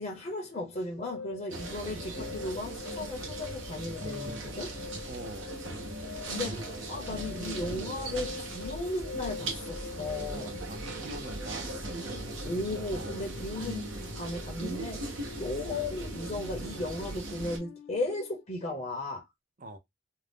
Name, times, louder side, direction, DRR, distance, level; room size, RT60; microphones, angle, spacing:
voice 1, 0.0-4.7 6.3-10.5 12.4-15.0 15.3-19.2, left 2 dB, 30° left, 0.6 m, -36 dB
sound 1, 1.0-18.4, left 5 dB, 75° left, 0.4 m, -45 dB
sound 2, 1.5-17.6, right 2 dB, 70° right, 0.8 m, -38 dB
voice 2, 5.1-5.5 6.2-6.6 10.7-11.8 19.6-19.8, right 1 dB, 40° right, 0.5 m, -43 dB
2.6 x 2.0 x 3.2 m
head